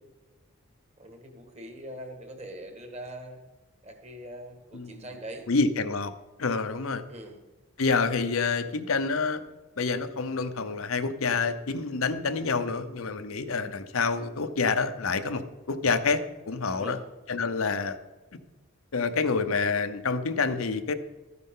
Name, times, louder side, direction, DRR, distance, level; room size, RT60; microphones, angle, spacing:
voice 1, 1.0-3.4 3.8-5.5 7.1-7.4 16.6-17.0, right 1 dB, 30° right, 5 dB, 1.7 m, -42 dB
voice 2, 5.5-6.1 6.4-7.0 7.8-9.4 9.8-15.4 15.7-16.2 16.5-17.0 17.3-18.0 18.9-20.9, left 4 dB, 75° left, 9 dB, 0.8 m, -27 dB
13.0 x 9.7 x 3.8 m, 1.1 s
head